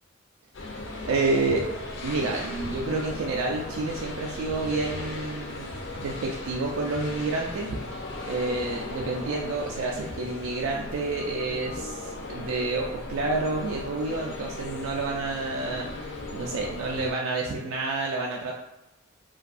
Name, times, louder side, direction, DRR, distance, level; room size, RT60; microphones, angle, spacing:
sound 1, 0.5-17.1, left 2 dB, 60° left, 0.4 m, -37 dB
voice 1, 1.1-1.7 2.0-5.7 6.0-7.8 8.3-18.5, right 3 dB, 80° right, -1 dB, 0.3 m, -29 dB
2.6 x 2.2 x 2.4 m, 0.98 s
head